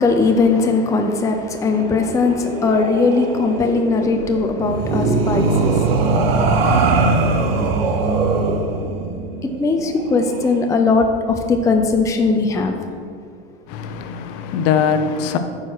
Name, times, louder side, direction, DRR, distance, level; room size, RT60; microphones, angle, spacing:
voice 1, 0.0-5.9 9.4-12.7, left 4 dB, 10° left, 4 dB, 0.5 m, -19 dB
sound 1, 1.7-10.6, right 3 dB, 70° right, 0.9 m, -21 dB
voice 2, 13.7-15.4, left 7 dB, 50° left, 8 dB, 0.7 m, -21 dB
8.7 x 4.8 x 4.6 m, 2.2 s
hypercardioid pair, 105°, 31 cm